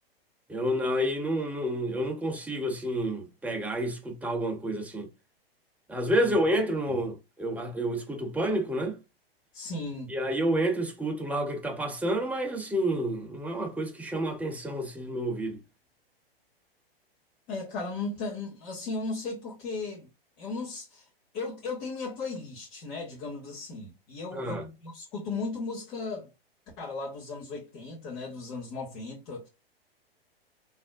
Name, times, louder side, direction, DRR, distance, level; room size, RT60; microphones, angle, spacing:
voice 1, 0.5-5.1 5.9-8.9 10.1-15.6 24.3-24.7, right 1 dB, 5° right, 0.7 m, -29 dB
voice 2, 9.5-10.1 17.5-20.1 20.4-21.0 21.3-26.3 26.8-29.5, left 3 dB, 40° left, 1.9 m, -36 dB
4.1 x 3.5 x 2.5 m
figure-of-eight pair, 110°, 30 cm